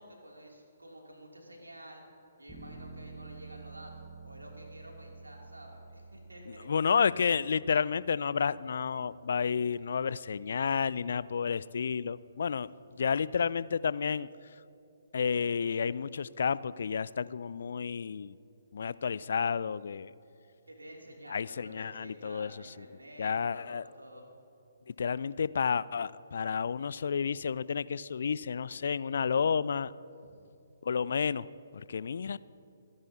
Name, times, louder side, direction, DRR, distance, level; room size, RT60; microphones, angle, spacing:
voice 1, 0.0-2.1 2.4-6.9 20.7-24.3, equal, 80° right, -1 dB, 2.6 m, -50 dB
sound 1, 2.5-13.2, right 4 dB, 10° right, 1.6 m, -52 dB
voice 2, 6.7-12.7 13.0-14.3 15.1-18.4 18.7-20.1 21.3-22.5 23.2-23.8 25.0-29.9 30.9-31.5 31.7-32.4, left 6 dB, 55° left, 19 dB, 0.3 m, -31 dB
26.5 x 10.5 x 2.8 m, 2.7 s
figure-of-eight pair, 130°, 0 cm